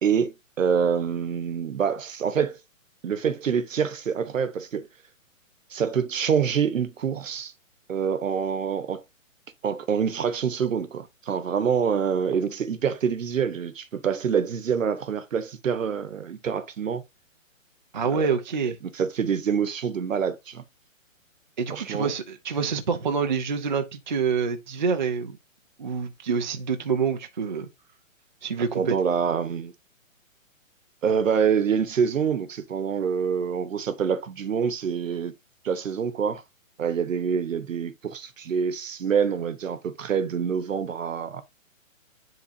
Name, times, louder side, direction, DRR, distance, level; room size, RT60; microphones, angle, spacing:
voice 1, 0.0-2.6 3.0-4.9 5.7-7.5 7.9-9.0 9.6-17.0 18.0-18.3 18.8-20.6 21.7-22.1 28.7-29.7 31.0-35.3 35.6-36.4 36.8-41.4, right 7 dB, 70° right, 1.1 m, -26 dB
voice 2, 17.9-18.8 21.6-25.4 25.8-27.7 28.4-28.9, right 5 dB, 35° right, 0.6 m, -26 dB
10.0 x 3.8 x 2.6 m
hypercardioid pair, 170°, 41 cm